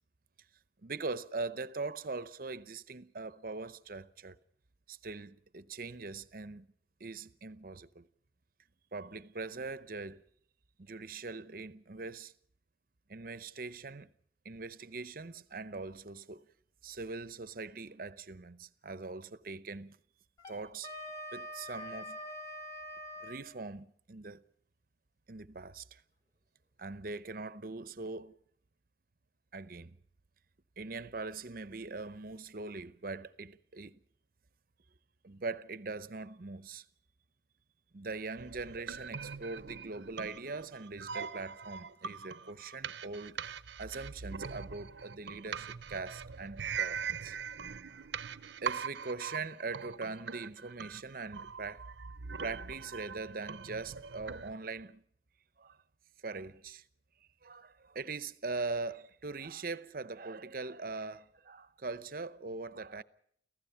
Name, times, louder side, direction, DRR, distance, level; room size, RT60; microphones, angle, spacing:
voice 1, 0.8-4.4 4.9-6.7 7.0-8.1 8.9-10.2 10.8-12.3 13.1-14.1 14.4-16.5 16.8-20.0 20.5-20.9 21.3-22.2 23.2-24.4 25.3-26.0 26.8-28.4 29.5-30.0 30.8-34.0 35.2-36.8 37.9-47.4 48.6-51.9 52.4-55.0 55.6-55.8 56.2-56.9 57.4-63.0, right 3 dB, 55° right, 0.8 m, -41 dB
Wind instrument woodwind instrument, 20.4-23.5, left 1 dB, 20° left, 3.9 m, -44 dB
sound 1, 38.4-54.5, right 6 dB, 85° right, 0.7 m, -42 dB
29.5 x 15.0 x 5.7 m
head